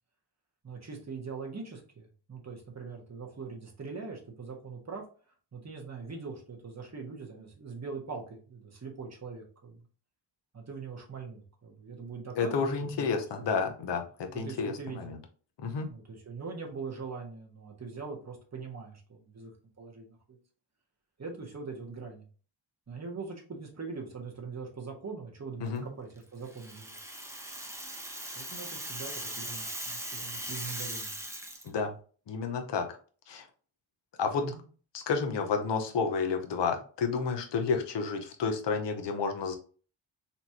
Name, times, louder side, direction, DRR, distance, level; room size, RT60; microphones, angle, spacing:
voice 1, 0.6-5.0 5.5-9.8 10.5-12.7 13.0-13.1 13.5-13.6 14.3-15.2 15.9-19.5 19.8-20.4 21.2-22.3 22.9-27.0 28.3-31.1 34.4-34.6, right 4 dB, 35° right, 0 dB, 1.4 m, -42 dB
voice 2, 12.4-15.2 15.6-15.9 25.6-25.8 31.6-31.9 32.3-32.9 33.3-33.5 34.2-34.5 34.9-39.6, left 5 dB, 65° left, 5 dB, 0.8 m, -30 dB
Rattle (instrument), 26.4-31.7, right 1 dB, 5° right, 0.8 m, -39 dB
4.3 x 3.0 x 2.8 m, 0.40 s
wide cardioid pair, 100°, 45 cm